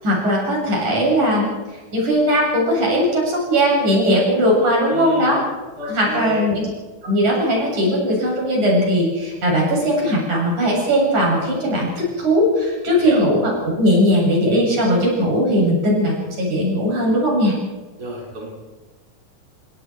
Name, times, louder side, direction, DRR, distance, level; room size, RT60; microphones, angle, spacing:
voice 1, 0.0-1.5 1.9-5.4 5.8-6.7 7.0-17.6, equal, 65° right, -3 dB, 9.3 m, -18 dB
voice 2, 4.9-5.4 5.8-6.5 12.9-13.2 18.0-18.5, equal, 30° right, -3 dB, 5.5 m, -30 dB
30.0 x 20.5 x 4.7 m, 1.2 s
omnidirectional pair, 3.7 m